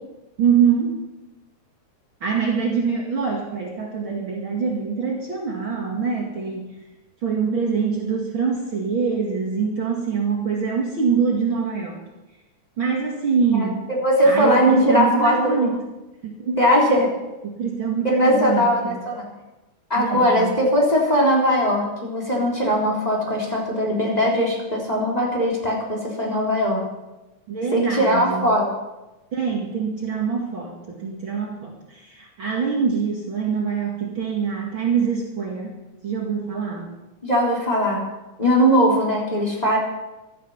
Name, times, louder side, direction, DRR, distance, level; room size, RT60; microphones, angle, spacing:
voice 1, 0.4-1.0 2.2-6.7 7.2-12.0 12.8-13.9 14.2-15.8 16.2-16.6 17.4-19.0 20.0-20.6 27.5-28.5 29.3-36.9, right 6 dB, 45° right, -1 dB, 2.7 m, -24 dB
voice 2, 14.0-15.4 16.6-17.1 18.1-19.3 19.9-26.8 27.7-28.7 37.2-38.0 38.4-39.8, equal, 15° left, -3 dB, 3.9 m, -20 dB
17.0 x 13.0 x 5.7 m, 1.0 s
omnidirectional pair, 3.3 m